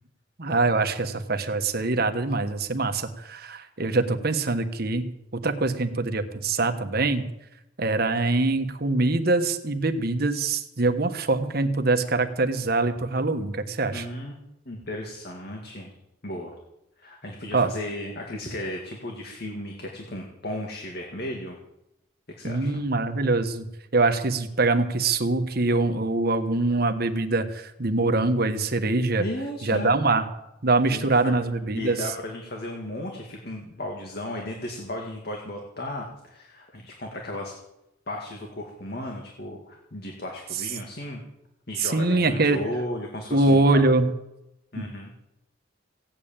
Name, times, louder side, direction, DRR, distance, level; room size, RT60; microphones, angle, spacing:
voice 1, 0.4-5.1 5.3-7.3 7.8-14.0 17.5-17.7 22.4-23.7 23.9-29.2 29.6-30.2 30.6-32.0 41.8-42.6 43.3-44.1 44.7-44.9, right 3 dB, 55° right, 7 dB, 1.3 m, -23 dB
voice 2, 13.9-14.4 14.7-15.9 16.2-16.6 17.0-21.6 22.4-22.8 29.2-30.0 30.9-31.4 31.7-37.6 38.1-41.2 41.7-43.8 44.7-45.1, left 1 dB, 55° left, 1 dB, 2.2 m, -35 dB
16.5 x 8.8 x 8.9 m, 0.89 s
head